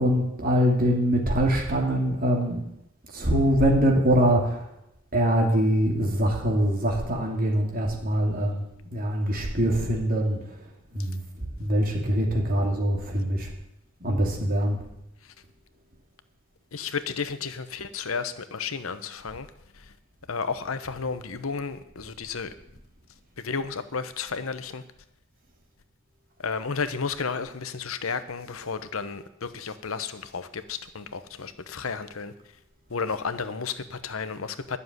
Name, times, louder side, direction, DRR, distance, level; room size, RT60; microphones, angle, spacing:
voice 1, 0.0-2.7 3.1-4.8 5.1-8.7 8.9-13.5 14.0-14.8, equal, 45° right, 1 dB, 2.7 m, -24 dB
voice 2, 16.7-19.5 19.7-19.9 20.3-22.5 23.4-24.8 26.4-32.3 32.9-34.8, left 5 dB, 85° left, 11 dB, 0.9 m, -32 dB
11.5 x 7.0 x 9.5 m, 0.85 s
head